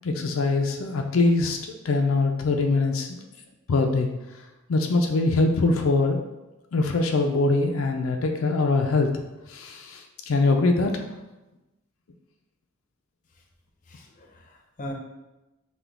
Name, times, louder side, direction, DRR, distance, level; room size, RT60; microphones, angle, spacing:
voice 1, 0.0-3.2 3.7-4.1 4.7-6.2 6.7-9.1 9.5-11.0, left 3 dB, 90° left, 4 dB, 0.5 m, -23 dB
voice 2, 13.8-14.9, equal, 40° left, 1 dB, 0.6 m, -40 dB
5.7 x 2.2 x 3.5 m, 1.0 s
head